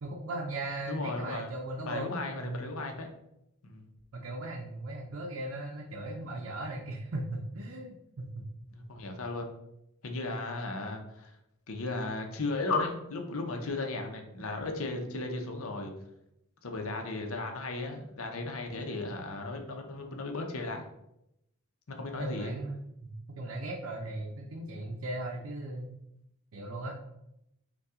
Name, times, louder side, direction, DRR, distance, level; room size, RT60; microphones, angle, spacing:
voice 1, 0.0-2.1 2.4-2.6 4.1-8.5 22.1-25.9 26.5-27.0, right 2 dB, 75° right, -1 dB, 0.6 m, -38 dB
voice 2, 0.9-1.5 1.8-3.1 3.6-3.9 8.7-9.6 10.0-11.3 11.7-15.9 16.6-20.9 21.9-22.6, left 2 dB, 75° left, 3 dB, 0.7 m, -35 dB
5.4 x 2.3 x 3.6 m, 0.83 s
head